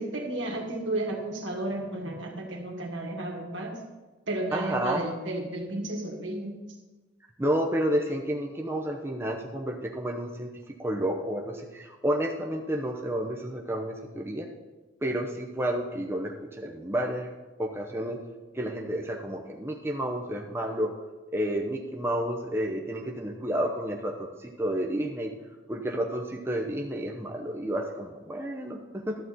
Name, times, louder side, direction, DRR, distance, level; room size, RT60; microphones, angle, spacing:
voice 1, 0.0-3.8 4.3-6.6, right 1 dB, 75° right, 1 dB, 1.9 m, -33 dB
voice 2, 4.5-5.0 7.4-10.5 10.8-14.5 15.0-17.3 17.6-18.2 18.5-20.9 21.3-25.3 25.7-29.2, right 1 dB, 15° right, 1 dB, 0.8 m, -30 dB
12.5 x 4.2 x 7.8 m, 1.2 s
head